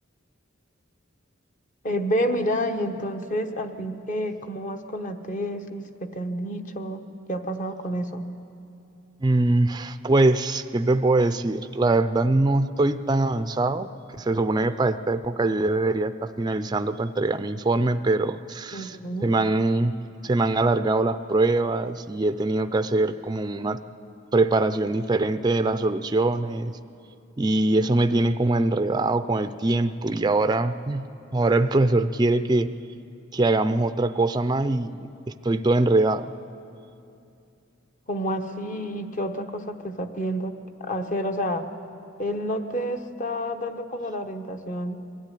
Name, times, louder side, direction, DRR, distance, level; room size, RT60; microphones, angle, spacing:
voice 1, 1.8-8.3 18.7-19.3 38.1-41.7 42.2-45.0, equal, 40° left, 6 dB, 1.1 m, -29 dB
voice 2, 9.2-19.0 19.2-19.9 20.2-23.8 24.3-26.8 27.4-31.1 31.3-32.7 33.3-35.0 35.3-36.3, right 2 dB, 20° right, 11 dB, 0.4 m, -23 dB
22.0 x 13.5 x 10.0 m, 2.6 s
head